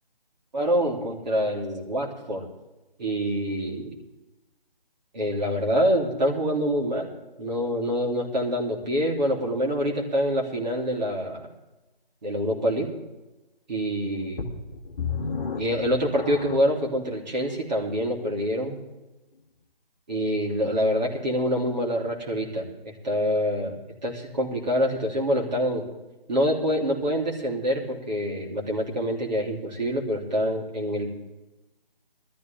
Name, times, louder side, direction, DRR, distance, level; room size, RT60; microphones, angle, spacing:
voice 1, 0.5-2.5 3.0-3.9 5.1-7.1 7.4-11.5 12.2-12.9 13.7-14.5 15.6-18.8 20.1-25.8 26.3-31.1, equal, 45° right, -1 dB, 3.4 m, -26 dB
sound 1, 14.4-16.8 17.5-17.6 18.2-18.3, left 5 dB, 15° left, 1.7 m, -33 dB
18.5 x 13.5 x 3.6 m, 1.0 s
figure-of-eight pair, 165°, 30 cm